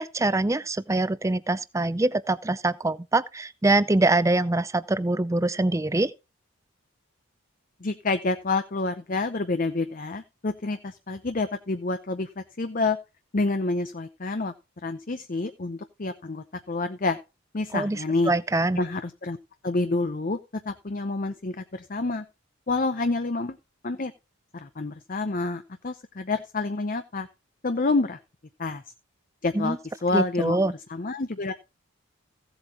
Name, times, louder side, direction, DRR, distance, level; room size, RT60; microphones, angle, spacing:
voice 1, 0.0-6.1 17.7-18.8 29.5-29.8 30.1-30.7, right 2 dB, 15° right, 0.4 m, -24 dB
voice 2, 7.8-13.0 13.3-14.5 14.8-17.2 17.5-18.3 18.8-19.4 19.6-20.4 20.7-22.2 22.7-23.6 23.8-24.1 24.5-27.3 27.6-28.2 28.6-28.8 29.4-31.5, left 3 dB, 40° left, 0.7 m, -28 dB
16.0 x 8.0 x 2.9 m
head